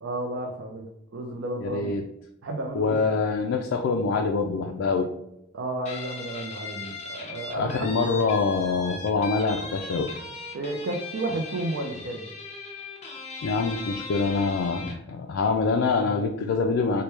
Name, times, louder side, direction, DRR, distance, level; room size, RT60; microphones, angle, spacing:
voice 1, 0.0-1.9 2.4-3.0 5.5-7.9 10.5-12.3, right 2 dB, 70° right, 1 dB, 0.5 m, -32 dB
voice 2, 1.6-2.0 2.7-5.1 7.5-10.1 13.4-17.0, left 4 dB, 75° left, 3 dB, 0.3 m, -25 dB
Guitar, 5.9-15.1, left 4 dB, 35° left, 0.7 m, -38 dB
4.4 x 2.1 x 3.2 m, 0.82 s
head